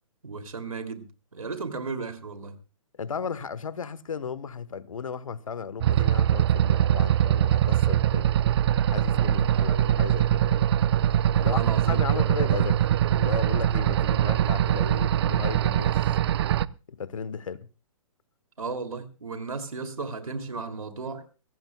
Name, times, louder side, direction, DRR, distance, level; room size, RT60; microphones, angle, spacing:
voice 1, 0.2-2.6 9.5-9.8 11.3-12.5 18.6-21.3, right 4 dB, 80° right, 2.7 m, -35 dB
voice 2, 3.0-8.4 8.9-10.7 11.4-12.8 13.1-16.0 16.9-17.7, left 6 dB, 70° left, 1.2 m, -35 dB
sound 1, 5.8-16.7, right 11 dB, 50° right, 0.6 m, -22 dB
23.5 x 17.5 x 2.3 m
figure-of-eight pair, 125°, 18 cm